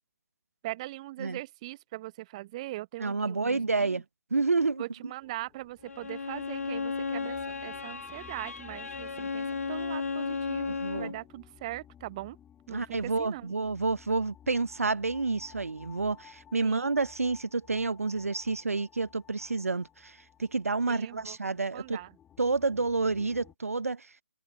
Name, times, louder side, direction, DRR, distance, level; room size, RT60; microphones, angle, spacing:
voice 1, 0.6-4.0 4.8-12.4 12.7-13.5 16.6-17.1 19.4-19.5 20.9-21.4 21.7-22.1, right 17 dB, 25° right, 1.0 m, -41 dB
voice 2, 3.0-4.0 4.3-4.8 10.8-11.1 12.7-22.0 22.4-24.1, right 3 dB, 65° right, 1.1 m, -29 dB
sound 1, 5.2-23.5, left 9 dB, 10° left, 1.9 m, -56 dB
Bowed string instrument, 5.8-11.2, left 4 dB, 65° left, 0.4 m, -34 dB
figure-of-eight pair, 140°, 8 cm